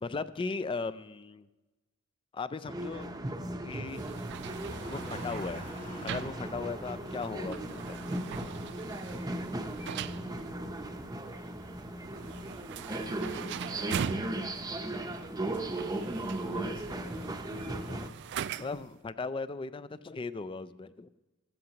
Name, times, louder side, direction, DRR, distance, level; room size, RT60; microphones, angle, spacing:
voice 1, 0.0-1.5 2.3-3.1 3.6-4.1 4.9-5.7 6.0-8.2 18.6-21.1, left 4 dB, 25° left, 14 dB, 0.3 m, -37 dB
sound 1, 2.6-18.1, right 1 dB, 20° right, 0.7 m, -37 dB
sound 2, 3.6-12.6, left 1 dB, 40° left, 2.0 m, -50 dB
sound 3, 3.9-18.9, right 8 dB, 55° right, 0.3 m, -42 dB
voice 2, 12.7-14.5 16.1-18.1 18.6-18.7, equal, 75° left, 2 dB, 1.7 m, -47 dB
15.5 x 13.5 x 2.9 m, 1.1 s
head